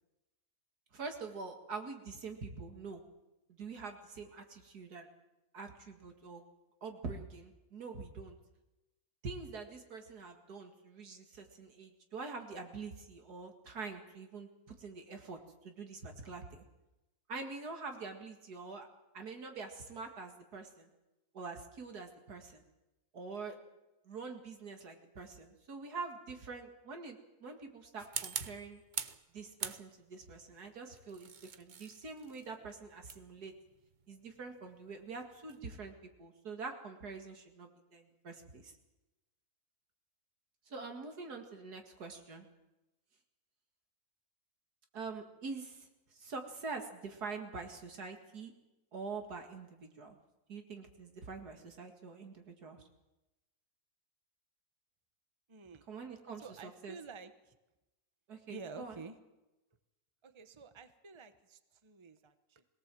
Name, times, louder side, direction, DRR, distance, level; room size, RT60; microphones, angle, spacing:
voice 1, 0.9-3.0 3.5-5.1 5.5-6.4 6.8-8.4 9.2-16.6 17.3-18.9 19.1-20.9 21.3-22.6 23.1-23.5 24.1-28.8 29.3-33.5 34.1-38.7 40.7-42.5 44.9-48.5 48.9-50.2 50.5-52.8 55.9-57.0 58.3-59.0, right 4 dB, 85° right, 5 dB, 2.6 m, -45 dB
sound 1, 28.0-29.2 29.6-30.2 30.9-35.7, right 6 dB, 40° right, 0.7 m, -44 dB
voice 2, 55.5-56.1 56.4-57.6 58.5-59.2 60.2-62.6, right 4 dB, 20° right, 10 dB, 1.0 m, -50 dB
22.0 x 18.0 x 7.7 m, 1.0 s
omnidirectional pair, 1.6 m